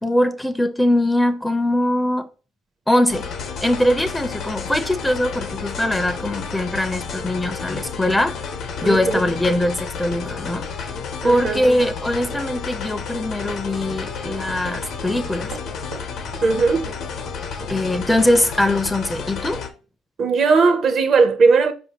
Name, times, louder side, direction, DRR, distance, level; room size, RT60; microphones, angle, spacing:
voice 1, 0.0-2.3 2.9-3.3 3.6-8.4 8.8-10.7 11.2-15.5 17.7-19.6, left 1 dB, 10° left, 0.5 m, -21 dB
sound 1, 3.1-19.7, left 5 dB, 65° left, 0.7 m, -31 dB
voice 2, 8.8-9.2 11.2-11.6 16.4-16.9 20.2-21.7, right 4 dB, 55° right, 0.6 m, -17 dB
Run, 13.1-16.1 16.3-16.5 16.9-17.1 17.6-17.7 18.3-18.4, right 3 dB, 75° right, 1.1 m, -40 dB
4.7 x 2.6 x 2.8 m
supercardioid pair, 80°, 0 cm